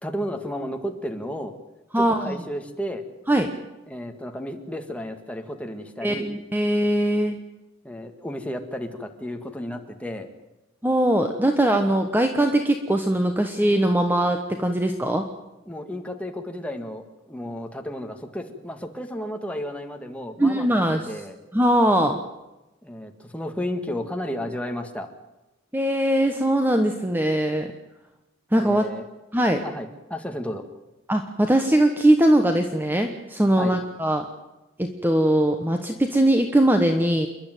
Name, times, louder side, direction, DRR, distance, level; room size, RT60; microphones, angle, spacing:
voice 1, 0.0-1.5 2.0-3.0 3.9-6.3 7.8-10.3 15.7-20.7 21.1-21.4 22.8-25.1 28.6-29.0 29.6-30.7 33.6-33.8, equal, 5° left, 5 dB, 1.8 m, -33 dB
voice 2, 1.9-2.4 3.3-3.5 6.0-7.4 10.8-15.3 20.4-21.0 21.5-22.2 25.7-27.7 28.5-28.9 29.3-29.6 31.1-34.2 34.8-37.3, right 1 dB, 10° right, 5 dB, 1.2 m, -21 dB
28.5 x 11.5 x 9.2 m, 1.0 s
head